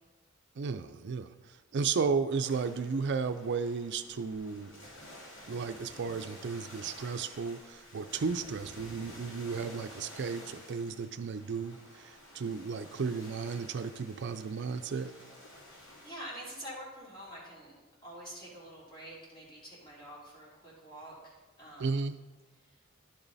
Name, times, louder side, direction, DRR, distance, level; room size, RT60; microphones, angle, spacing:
voice 1, 0.6-4.8 5.5-15.1 21.8-22.2, right 5 dB, 55° right, 10 dB, 0.4 m, -34 dB
sound 1, 2.4-16.1, left 1 dB, 65° left, 2.5 m, -51 dB
voice 2, 15.7-21.9, equal, 25° left, -7 dB, 3.3 m, -47 dB
11.0 x 7.1 x 4.0 m, 1.2 s
head